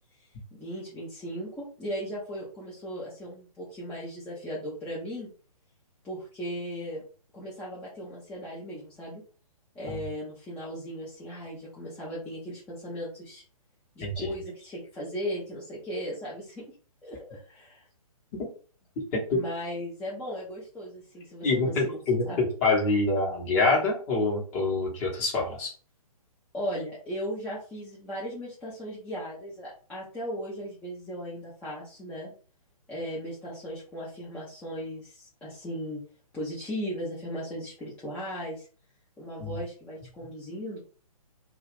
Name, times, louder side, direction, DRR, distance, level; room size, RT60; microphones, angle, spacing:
voice 1, 0.5-5.3 6.0-7.0 7.3-9.2 9.7-13.4 14.0-16.6 17.0-17.8 19.3-22.0 22.3-22.4 26.5-32.3 32.9-36.0 36.3-38.7 39.2-40.8, equal, 5° left, -9 dB, 0.5 m, -37 dB
voice 2, 21.4-25.7 39.4-39.6, left 3 dB, 25° left, -2 dB, 0.9 m, -25 dB
2.3 x 2.3 x 3.3 m, 0.39 s
figure-of-eight pair, 130°, 20 cm